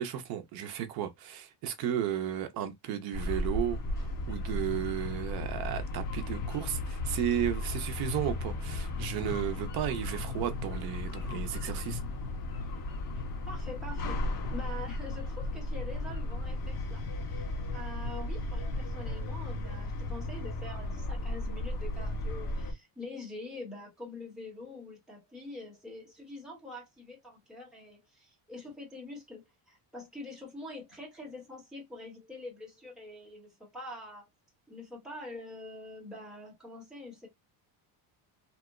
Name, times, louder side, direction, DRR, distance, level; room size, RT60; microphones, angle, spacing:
voice 1, 0.0-12.0, right 10 dB, 50° right, 0.6 m, -34 dB
sound 1, 3.1-22.7, left 1 dB, 45° left, 1.4 m, -35 dB
sound 2, 4.5-19.6, left 5 dB, 90° left, 0.8 m, -43 dB
voice 2, 13.5-14.2 14.5-34.3 34.7-37.3, left 2 dB, ahead, 0.9 m, -45 dB
2.9 x 2.0 x 3.5 m
cardioid pair, 180°, 49 cm